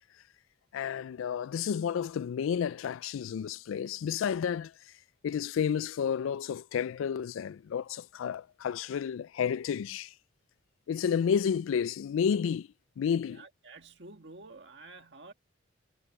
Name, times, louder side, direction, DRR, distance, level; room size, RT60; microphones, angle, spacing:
voice 1, 0.7-4.7 5.2-10.1 10.9-12.7 13.0-13.4, left 7 dB, 90° left, 0.3 m, -31 dB
voice 2, 13.3-15.3, right 3 dB, 60° right, 1.8 m, -50 dB
head